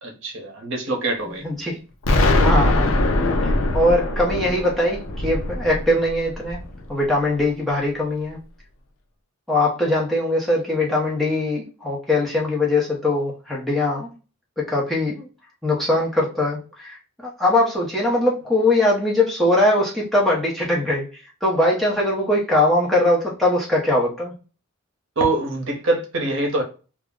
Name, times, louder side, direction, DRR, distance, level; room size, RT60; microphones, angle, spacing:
voice 1, 0.0-1.4 25.2-26.6, right 2 dB, 60° right, 0.7 m, -24 dB
voice 2, 1.3-1.8 2.4-3.2 3.4-6.6 6.9-8.4 9.5-14.1 14.6-15.3 15.6-24.3, left 1 dB, ahead, 0.6 m, -21 dB
Explosion, 2.0-6.9, left 2 dB, 65° left, 0.5 m, -21 dB
2.3 x 2.0 x 3.4 m
head